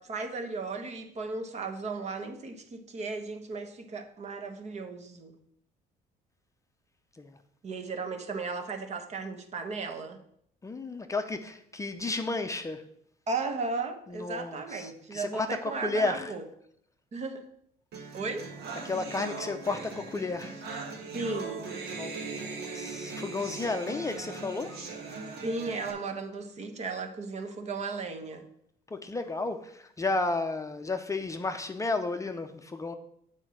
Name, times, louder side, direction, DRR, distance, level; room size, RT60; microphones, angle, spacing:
voice 1, 0.0-5.4 7.6-10.2 13.3-16.4 17.1-17.5 18.1-18.5 21.1-21.7 25.4-28.4, right 4 dB, 40° right, 1.1 m, -35 dB
voice 2, 10.6-12.8 14.1-16.3 18.8-20.6 22.0-24.8 28.9-32.9, left 3 dB, 20° left, 0.6 m, -33 dB
sound 1, 17.9-25.9, right 4 dB, 70° right, 1.6 m, -39 dB
7.7 x 4.5 x 6.2 m
cardioid pair, 110°, 17 cm